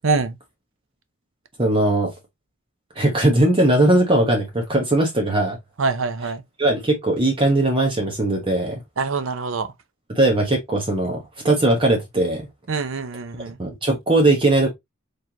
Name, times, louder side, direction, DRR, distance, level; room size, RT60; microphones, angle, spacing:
voice 1, 0.0-0.3 5.8-6.4 9.0-9.7 12.7-13.6, right 4 dB, 70° right, 0.7 m, -24 dB
voice 2, 1.6-2.1 2.9-5.6 6.6-8.8 10.1-12.5 13.6-14.7, right 2 dB, 25° right, 1.1 m, -19 dB
4.3 x 3.3 x 2.8 m
head